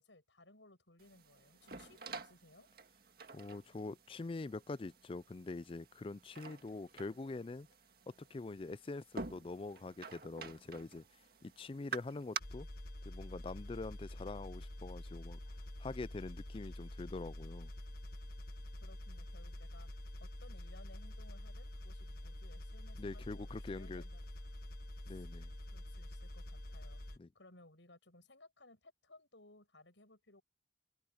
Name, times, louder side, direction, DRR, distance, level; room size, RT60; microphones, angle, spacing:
voice 1, 0.0-2.7 18.8-19.9 20.2-24.6 25.1-25.3 25.7-27.0 27.3-30.4, left 2 dB, 80° left, 6.9 m, -61 dB
sound 1, 1.0-12.4, right 5 dB, 55° right, 1.8 m, -49 dB
voice 2, 3.3-7.7 8.2-11.0 11.4-12.7 13.0-15.4 15.8-17.7 23.0-24.0 25.1-25.5 27.2-27.3, left 3 dB, 30° left, 0.4 m, -44 dB
sound 2, 12.4-27.2, left 1 dB, 50° left, 1.4 m, -47 dB
head